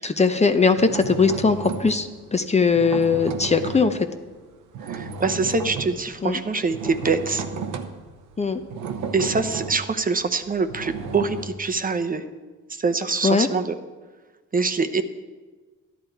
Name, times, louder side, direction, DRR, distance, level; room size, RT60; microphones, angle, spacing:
voice 1, 0.0-4.1 6.2-6.4 8.4-8.6 13.2-13.5, left 4 dB, 20° left, 8 dB, 0.7 m, -20 dB
sound 1, 0.7-4.0 4.3-11.5, right 5 dB, 90° right, 1.0 m, -33 dB
voice 2, 4.8-7.4 9.1-12.2 12.7-13.7 14.5-15.0, right 4 dB, 30° right, 8 dB, 0.8 m, -24 dB
13.0 x 11.0 x 4.6 m, 1.3 s
cardioid pair, 90°, 30 cm